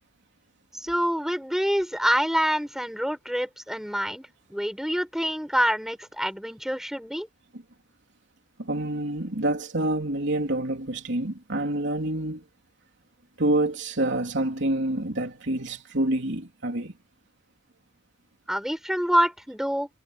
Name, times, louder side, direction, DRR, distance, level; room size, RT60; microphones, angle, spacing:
voice 1, 0.8-7.3 18.5-19.9, equal, ahead, 6.8 m, -26 dB
voice 2, 8.6-12.4 13.4-16.9, right 1 dB, 65° right, 3.6 m, -27 dB
head